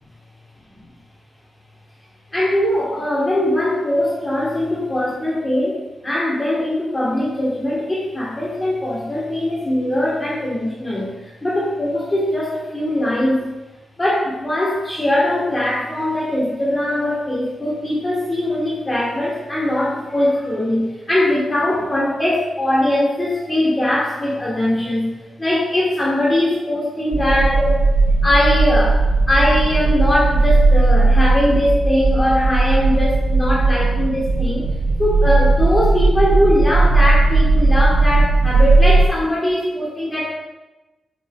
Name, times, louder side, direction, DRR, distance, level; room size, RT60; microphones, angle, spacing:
voice 1, 2.3-13.5 14.0-25.1 25.4-27.8 28.2-29.0 29.3-34.6 35.0-40.3, left 1 dB, 20° left, -5 dB, 1.2 m, -20 dB
sound 1, 27.1-39.1, right 3 dB, 60° right, 0.6 m, -16 dB
7.8 x 5.5 x 2.2 m, 1.1 s
wide cardioid pair, 130°, 0 cm